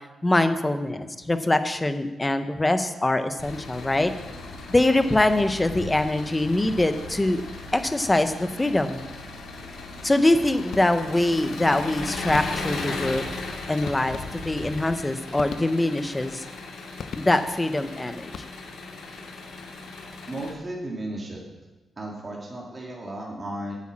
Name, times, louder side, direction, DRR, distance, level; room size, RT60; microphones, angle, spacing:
voice 1, 0.2-4.1 4.7-7.4 7.7-9.0 10.0-13.2 13.7-16.4 17.2-18.3, left 1 dB, 15° left, 9 dB, 0.8 m, -23 dB
Engine, 3.4-20.5, left 3 dB, 90° left, 2.7 m, -37 dB
sound 1, 10.7-11.3 12.3-12.9 13.8-14.7 15.3-16.1 17.0-17.7 18.2-18.9, left 6 dB, 60° left, 0.7 m, -39 dB
voice 2, 20.3-21.4 22.0-23.7, right 1 dB, 25° right, -3 dB, 2.3 m, -34 dB
9.3 x 8.5 x 7.4 m, 1.1 s
cardioid pair, 130°, 0 cm